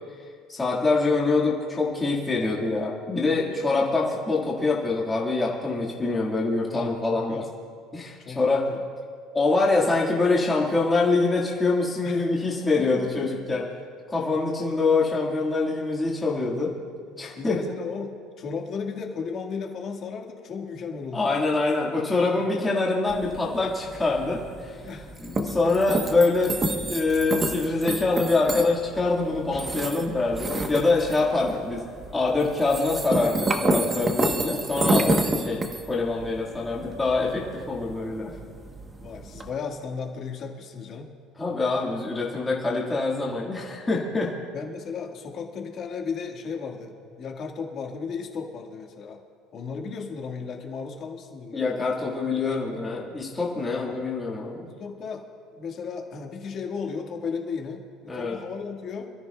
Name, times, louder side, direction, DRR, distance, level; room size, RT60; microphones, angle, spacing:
voice 1, 0.5-7.4 7.9-8.6 9.3-13.7 14.1-16.7 17.2-17.6 21.1-24.8 25.2-26.6 26.9-31.8 32.1-38.3 41.4-44.3 51.5-54.7 58.1-58.4, left 3 dB, 15° left, -4 dB, 1.8 m, -25 dB
voice 2, 6.7-7.5 8.2-8.8 12.0-12.4 12.8-13.2 13.5-13.6 17.2-21.2 22.3-22.4 24.8-25.6 25.9-26.0 39.0-41.1 44.5-49.2 49.5-51.8 53.8-54.0 54.6-55.2 55.5-59.1, left 5 dB, 40° left, 2 dB, 1.7 m, -35 dB
sound 1, 23.1-39.5, right 2 dB, 20° right, 1.0 m, -30 dB
27.0 x 13.5 x 2.3 m, 2.1 s
cardioid pair, 150°, 0 cm